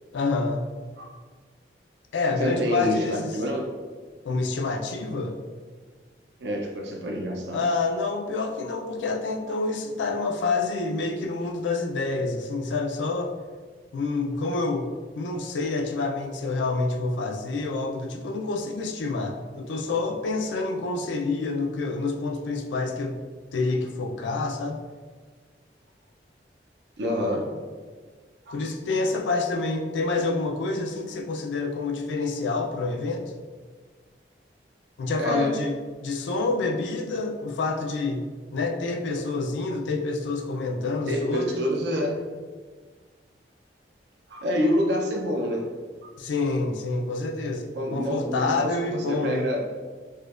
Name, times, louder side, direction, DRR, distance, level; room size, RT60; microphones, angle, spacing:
voice 1, 0.1-0.7 2.1-3.4 4.3-5.4 7.5-13.3 13.9-14.9 15.2-23.2 23.5-24.8 28.5-33.2 35.0-35.7 36.0-38.2 38.5-41.6 46.2-47.7 47.9-49.5, left 3 dB, 85° left, 4 dB, 0.4 m, -27 dB
voice 2, 2.4-3.6 6.4-7.6 27.0-27.4 28.5-28.6 35.2-35.5 41.1-42.1 44.3-45.6 47.7-49.6, equal, 75° right, 1 dB, 0.5 m, -27 dB
4.3 x 2.2 x 2.4 m, 1.5 s
head